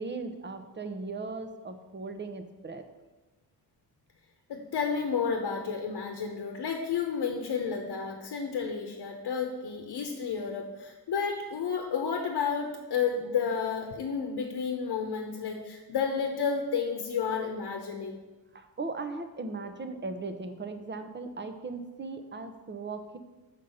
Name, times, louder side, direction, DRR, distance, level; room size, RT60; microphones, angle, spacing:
voice 1, 0.0-2.8 18.5-23.2, right 3 dB, 30° right, 8 dB, 0.7 m, -38 dB
voice 2, 4.5-18.2, left 6 dB, 75° left, 3 dB, 0.9 m, -31 dB
6.4 x 5.2 x 5.5 m, 1.2 s
cardioid pair, 85°, 39 cm